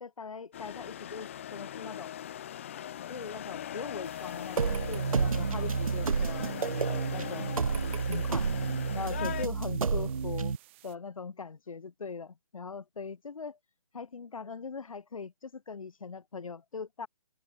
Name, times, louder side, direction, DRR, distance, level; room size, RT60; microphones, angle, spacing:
voice 1, 0.0-2.1 3.1-7.6 8.0-10.5 10.8-13.6 13.9-17.1, left 5 dB, 75° left, 3.3 m, -41 dB
sound 1, 0.5-9.5, left 10 dB, 25° left, 0.7 m, -40 dB
sound 2, 4.0-11.0, right 19 dB, 20° right, 7.9 m, -58 dB
sound 3, 4.6-10.6, right 5 dB, 80° right, 1.5 m, -30 dB
open air
hypercardioid pair, 170°, 18 cm